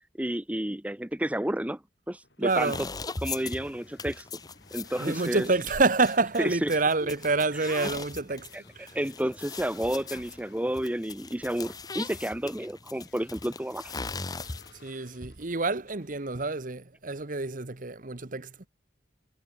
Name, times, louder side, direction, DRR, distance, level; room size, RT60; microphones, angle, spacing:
voice 1, 0.2-1.8 2.1-2.9 3.2-4.3 4.7-5.5 6.4-6.7 7.5-7.6 8.5-14.0, right 1 dB, 10° right, 0.8 m, -31 dB
sound 1, 2.2-12.3 12.9-16.6, left 4 dB, 65° left, 7.9 m, -60 dB
voice 2, 2.4-2.8 5.0-8.5 8.7-9.0 14.8-18.7, right 3 dB, 45° right, 1.2 m, -27 dB
sound 2, 2.5-14.9, left 4 dB, 20° left, 0.8 m, -40 dB
head